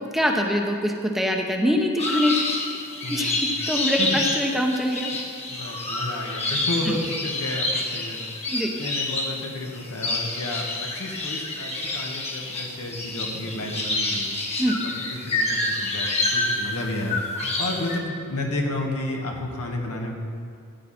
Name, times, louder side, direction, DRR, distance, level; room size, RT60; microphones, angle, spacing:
voice 1, 0.1-2.5 3.1-5.1 6.8-7.0 8.5-8.7 14.6-14.8, equal, ahead, 1 dB, 0.9 m, -24 dB
sound 1, 2.0-18.0, left 2 dB, 30° left, 1.5 m, -28 dB
voice 2, 3.0-3.4 4.0-4.2 5.5-8.2 8.8-14.3 15.1-20.1, left 1 dB, 85° left, 0 dB, 1.8 m, -31 dB
14.5 x 9.2 x 4.4 m, 2.4 s
head